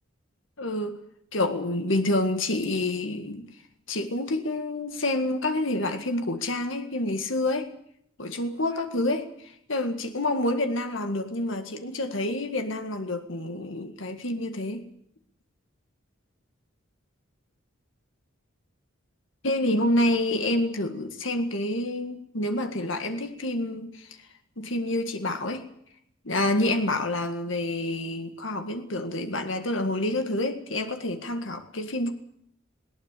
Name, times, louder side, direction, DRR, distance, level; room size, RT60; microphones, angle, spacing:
voice 1, 0.6-1.0 1.3-3.5 3.9-7.7 8.2-14.8 19.4-24.1 24.6-25.6 26.3-32.1, left 1 dB, 65° left, 7 dB, 1.9 m, -28 dB
19.5 x 18.5 x 8.4 m, 0.69 s
head